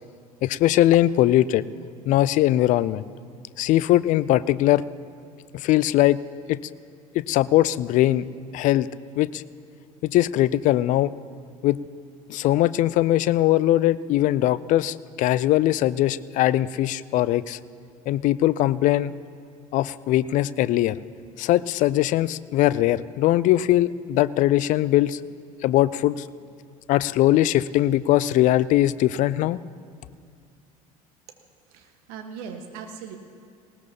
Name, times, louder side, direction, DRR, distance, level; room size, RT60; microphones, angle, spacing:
voice 1, 0.4-1.6 2.1-3.0 3.6-4.8 5.5-6.2 6.5-6.6 7.1-8.3 8.5-8.9 9.2-9.4 10.0-11.1 11.6-11.8 12.3-17.6 18.1-19.1 19.7-21.0 21.4-25.2 25.6-26.3 26.9-29.6, left 14 dB, 45° left, 18 dB, 0.4 m, -20 dB
voice 2, 31.7-33.2, right 6 dB, 60° right, 5 dB, 1.4 m, -39 dB
19.5 x 18.0 x 2.9 m, 2.3 s
figure-of-eight pair, 65°, 19 cm